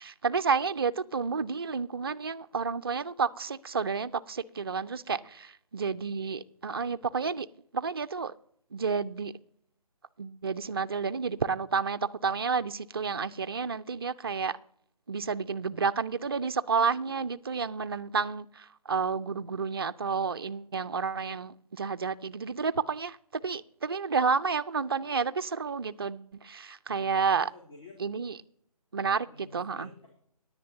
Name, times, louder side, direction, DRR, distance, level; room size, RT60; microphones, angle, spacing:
voice 1, 0.0-7.5 7.7-8.3 8.7-9.3 10.2-14.6 15.1-23.2 23.4-27.5 28.0-28.4 28.9-29.9, right 5 dB, 40° right, 0.4 m, -30 dB
voice 2, 26.9-28.0 29.2-30.1, left 2 dB, 60° left, 3.3 m, -52 dB
17.5 x 10.0 x 2.8 m
figure-of-eight pair, 150°, 20 cm